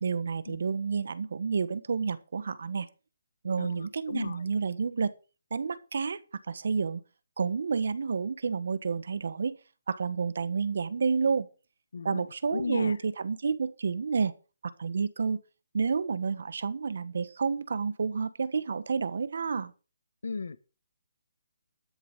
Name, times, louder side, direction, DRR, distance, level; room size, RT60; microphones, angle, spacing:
voice 1, 0.0-2.9 3.4-5.1 5.5-6.2 6.5-7.0 7.4-9.6 9.9-11.5 12.0-14.3 14.6-15.4 15.7-19.7, right 5 dB, 60° right, 1.2 m, -30 dB
voice 2, 3.6-4.4 11.9-12.2 12.5-12.9 20.2-20.6, left 4 dB, 75° left, 1.4 m, -35 dB
12.5 x 7.0 x 6.5 m
hypercardioid pair, 170°, 0 cm